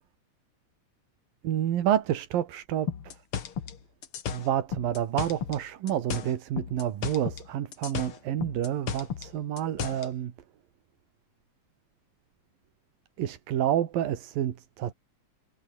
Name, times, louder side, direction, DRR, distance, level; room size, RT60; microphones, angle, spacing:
voice 1, 1.4-2.9 4.3-10.3 13.2-14.9, right 11 dB, 85° right, 3.5 m, -29 dB
sound 1, 2.9-5.6 5.9-7.5 7.7-10.1, left 8 dB, 45° left, 2.3 m, -34 dB
omnidirectional pair, 3.9 m